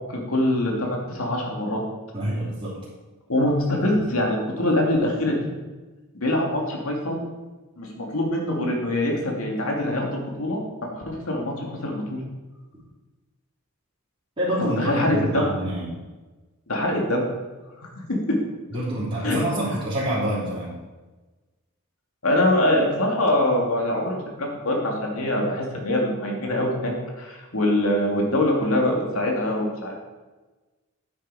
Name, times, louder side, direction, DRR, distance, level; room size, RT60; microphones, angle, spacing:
voice 1, 0.1-1.8 3.3-5.5 6.1-7.2 7.8-12.2 14.6-15.5 16.7-17.3 19.2-19.4 22.2-30.0, left 1 dB, 75° left, 0 dB, 2.4 m, -24 dB
voice 2, 2.1-2.8 14.4-16.0 18.7-20.7, right 1 dB, 30° right, -12 dB, 3.2 m, -26 dB
8.9 x 8.8 x 4.8 m, 1.2 s
head